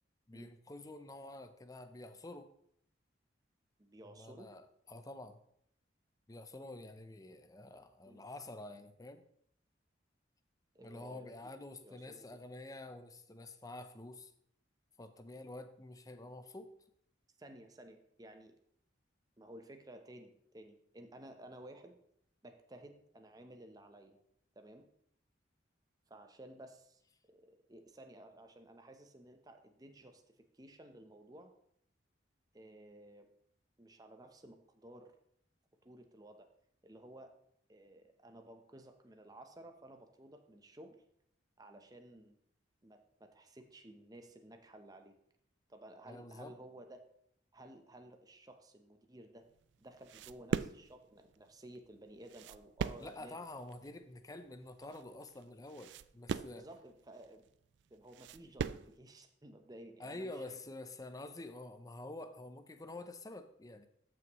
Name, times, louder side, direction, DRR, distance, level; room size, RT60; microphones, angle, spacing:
voice 1, 0.3-2.5 4.1-5.4 6.3-9.2 10.8-14.3 15.0-16.7 46.0-46.5 53.0-56.7 60.0-63.9, left 2 dB, 20° left, 9 dB, 0.6 m, -48 dB
voice 2, 3.8-4.5 8.0-8.2 10.7-11.5 11.8-12.4 17.4-18.5 19.4-22.0 22.4-24.2 24.6-24.9 26.1-27.0 27.3-31.5 32.5-33.3 33.8-35.1 35.8-36.5 36.8-37.3 37.7-41.0 41.6-42.4 42.8-45.1 45.7-47.0 47.5-49.5 49.8-53.4 56.5-57.5 57.9-60.6, right 1 dB, 20° right, 5 dB, 0.8 m, -55 dB
sound 1, 49.4-59.0, right 6 dB, 65° right, 0.3 m, -41 dB
13.5 x 6.1 x 3.1 m, 0.71 s
head